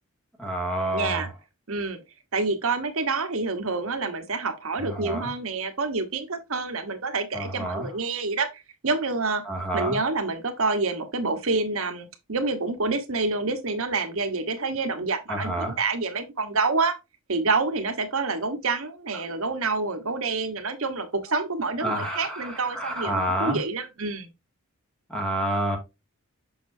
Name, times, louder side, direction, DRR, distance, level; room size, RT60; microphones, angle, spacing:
voice 1, 0.4-1.3 4.8-5.3 7.3-7.9 9.4-10.0 15.3-15.8 21.8-23.6 25.1-25.8, right 1 dB, 5° left, 2.1 m, -28 dB
voice 2, 0.9-1.3 1.7-2.0 2.3-9.4 9.7-17.0 17.3-24.3, right 3 dB, 65° right, 1.1 m, -27 dB
6.9 x 6.2 x 2.6 m
head